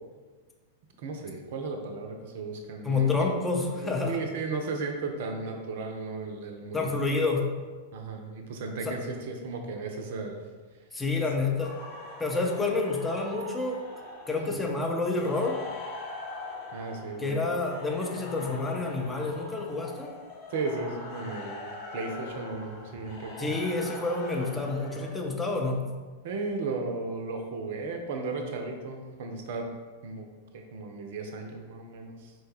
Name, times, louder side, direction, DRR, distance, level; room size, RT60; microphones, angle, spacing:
voice 1, 1.0-3.3 3.8-7.0 7.9-10.4 11.1-11.2 14.4-14.7 16.7-17.4 20.5-23.6 26.2-29.7 30.0-30.3 30.5-32.3, right 3 dB, 55° right, 4 dB, 0.5 m, -35 dB
voice 2, 2.8-4.2 6.7-7.5 8.8-9.0 10.9-11.8 12.2-13.8 14.3-15.6 17.2-20.1 23.4-25.9, left 3 dB, 10° left, 0 dB, 0.5 m, -28 dB
sound 1, 11.6-25.1, left 2 dB, 45° left, 0.7 m, -42 dB
4.4 x 2.2 x 3.1 m, 1.4 s
figure-of-eight pair, 95°, 0 cm